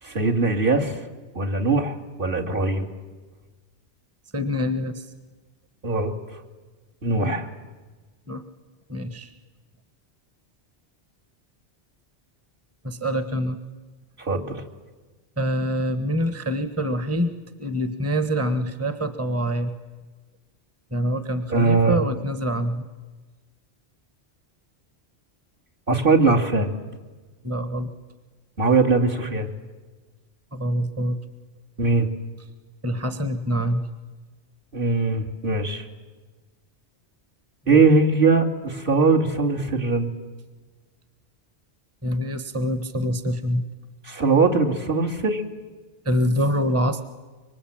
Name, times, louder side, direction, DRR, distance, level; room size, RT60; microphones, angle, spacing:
voice 1, 0.0-1.0 1.3-2.9 5.8-6.4 7.0-7.5 14.2-14.6 21.5-22.0 25.9-26.7 28.6-29.5 31.8-32.1 34.7-35.9 37.7-40.1 44.0-45.4, right 3 dB, 50° right, 0 dB, 2.9 m, -21 dB
voice 2, 4.3-5.1 7.2-7.3 8.3-8.4 8.9-9.3 12.8-13.6 15.4-19.7 20.9-22.9 27.4-27.9 30.5-31.2 32.8-33.8 37.7-37.8 42.0-43.6 46.0-47.0, equal, 15° right, 9 dB, 1.3 m, -25 dB
26.0 x 24.0 x 8.8 m, 1.3 s
omnidirectional pair, 1.1 m